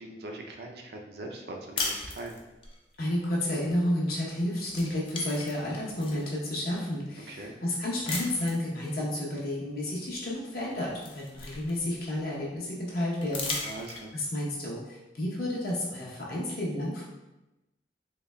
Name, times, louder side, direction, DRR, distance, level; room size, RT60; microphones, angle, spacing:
voice 1, 0.0-2.3 7.3-7.5 13.6-14.1, right 2 dB, 60° right, 1 dB, 0.5 m, -41 dB
sound 1, 1.8-2.8 4.2-4.4 4.7-6.3 6.9-7.0 8.1-8.7 10.1-10.2 10.6-12.1 13.2-14.3, left 3 dB, 30° left, 0.4 m, -36 dB
voice 2, 3.0-13.8 14.1-17.0, left 1 dB, 55° left, -4 dB, 0.8 m, -31 dB
3.9 x 3.1 x 2.2 m, 1.0 s
head